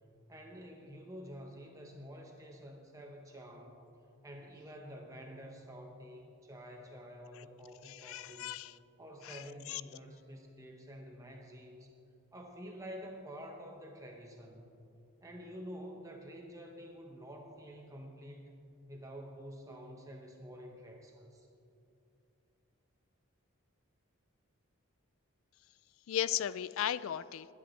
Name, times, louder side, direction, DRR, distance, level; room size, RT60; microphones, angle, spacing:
voice 1, 0.3-3.8 4.2-8.5 9.0-11.9 12.3-14.8 15.2-18.5 18.9-21.5, equal, 15° right, 1 dB, 0.9 m, -49 dB
voice 2, 7.9-8.8 9.2-9.8 26.1-27.5, left 10 dB, 65° left, 17 dB, 0.3 m, -36 dB
21.5 x 11.0 x 3.2 m, 2.7 s
head